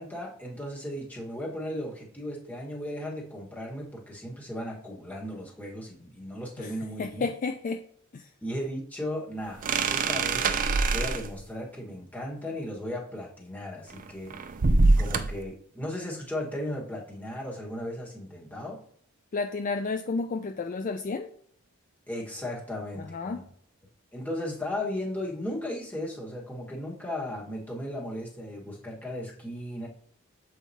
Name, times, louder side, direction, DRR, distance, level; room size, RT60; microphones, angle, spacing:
voice 1, 0.0-7.3 8.4-9.6 9.9-14.4 15.0-18.8 22.1-23.4 24.1-29.9, left 1 dB, 10° left, -3 dB, 1.4 m, -36 dB
voice 2, 7.0-7.8 8.1-8.3 19.3-21.3 23.0-23.4, left 4 dB, 40° left, 6 dB, 0.4 m, -31 dB
sound 1, 9.6-11.4 13.9-15.4, right 3 dB, 40° right, 0.4 m, -24 dB
7.3 x 4.7 x 2.8 m, 0.63 s
head